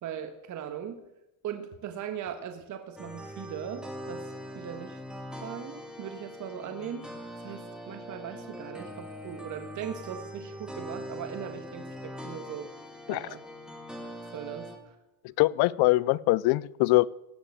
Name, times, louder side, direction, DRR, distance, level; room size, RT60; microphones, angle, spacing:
voice 1, 0.0-1.0 1.4-5.0 5.4-7.1 7.4-12.7 13.1-13.4 14.3-15.0, right 9 dB, 40° right, 6 dB, 1.6 m, -39 dB
sound 1, 3.0-14.8, equal, ahead, 2.4 m, -42 dB
voice 2, 15.4-17.1, left 20 dB, 50° left, 22 dB, 0.6 m, -23 dB
17.5 x 6.7 x 9.0 m, 0.91 s
supercardioid pair, 125°, 47 cm